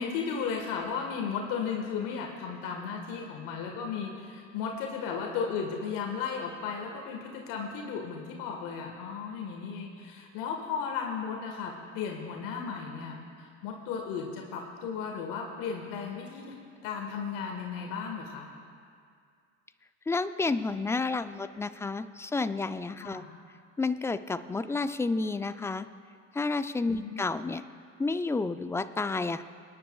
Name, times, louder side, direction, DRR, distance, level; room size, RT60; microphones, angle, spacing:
voice 1, 0.0-16.6 16.8-18.5 23.0-23.3 26.9-27.2, left 6 dB, 60° left, 2 dB, 1.6 m, -35 dB
voice 2, 20.1-23.2 23.8-25.9 26.3-27.6 28.0-29.4, left 3 dB, 5° left, 12 dB, 0.4 m, -30 dB
26.0 x 10.0 x 2.4 m, 2.2 s
hypercardioid pair, 75°, 37 cm